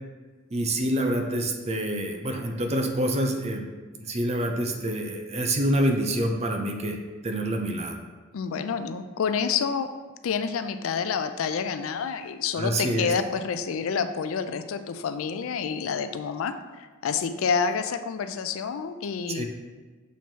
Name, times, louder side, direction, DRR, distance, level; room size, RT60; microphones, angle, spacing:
voice 1, 0.5-3.7 4.0-7.0 7.2-8.0 12.6-13.1 19.3-19.5, right 1 dB, 30° right, 3 dB, 0.6 m, -27 dB
voice 2, 8.3-9.9 10.2-19.5, left 6 dB, 70° left, 10 dB, 0.4 m, -28 dB
7.0 x 3.0 x 4.4 m, 1.4 s
head